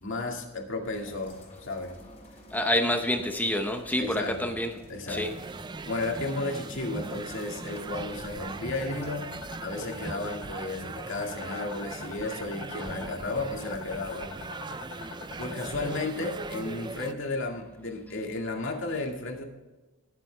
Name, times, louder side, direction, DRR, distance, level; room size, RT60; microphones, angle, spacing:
voice 1, 0.0-2.0 4.0-4.5 4.9-5.3 5.9-9.3 9.6-14.3 15.4-19.4, left 2 dB, 65° left, 2 dB, 2.2 m, -33 dB
sound 1, 0.8-9.6, left 1 dB, 30° left, 2.8 m, -51 dB
voice 2, 2.5-4.8 5.1-5.3, left 1 dB, 10° left, 5 dB, 0.9 m, -27 dB
sound 2, 5.1-17.1, right 3 dB, 20° right, 0.4 m, -39 dB
sound 3, 8.1-15.9, left 5 dB, 85° left, 1.2 m, -45 dB
20.0 x 7.5 x 3.4 m, 1.1 s
head